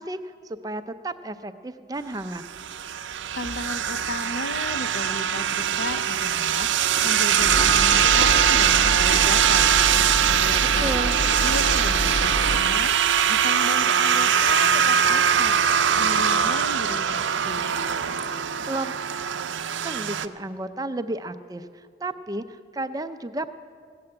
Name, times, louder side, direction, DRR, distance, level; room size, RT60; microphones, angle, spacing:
voice 1, 0.0-2.4 10.8-11.2 18.7-19.0 19.8-23.5, right 2 dB, 20° right, 10 dB, 0.5 m, -32 dB
sound 1, 2.3-20.3, right 8 dB, 75° right, 0.6 m, -22 dB
voice 2, 3.1-17.7, left 2 dB, 55° left, 11 dB, 0.6 m, -35 dB
sound 2, 7.4-12.6, equal, 75° left, 1.6 m, -28 dB
16.5 x 7.7 x 9.6 m, 2.1 s
head